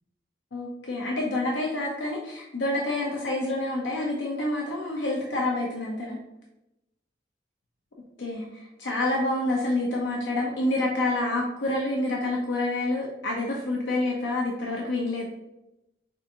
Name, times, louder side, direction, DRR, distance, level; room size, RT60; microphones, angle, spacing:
voice 1, 0.5-6.2 8.2-15.3, left 2 dB, 85° left, -2 dB, 0.7 m, -28 dB
6.2 x 2.5 x 2.7 m, 0.92 s
head